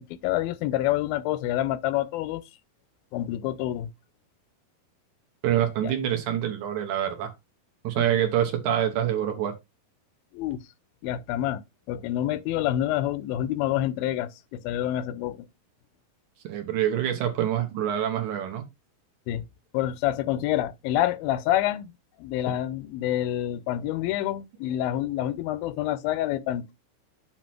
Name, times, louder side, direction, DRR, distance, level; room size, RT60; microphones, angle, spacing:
voice 1, 0.2-2.4 3.1-3.9 5.8-5.9 8.0-8.2 10.3-10.6 11.0-11.6 11.9-15.5 19.3-19.4 19.7-21.9 22.2-26.7, left 13 dB, 85° left, 2.5 m, -27 dB
voice 2, 5.4-7.3 7.8-9.5 16.4-18.7, right 10 dB, 70° right, 2.3 m, -26 dB
7.4 x 2.9 x 5.8 m
omnidirectional pair, 4.1 m